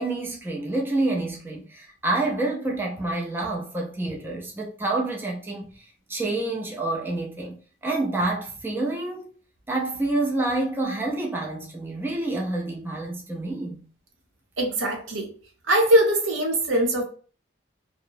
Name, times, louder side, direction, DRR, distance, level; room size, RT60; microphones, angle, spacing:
voice 1, 0.0-9.3 9.7-13.9, right 2 dB, 10° right, 0.5 m, -28 dB
voice 2, 14.6-15.3 15.7-17.0, right 1 dB, 80° right, 0.7 m, -21 dB
2.8 x 2.0 x 2.6 m
head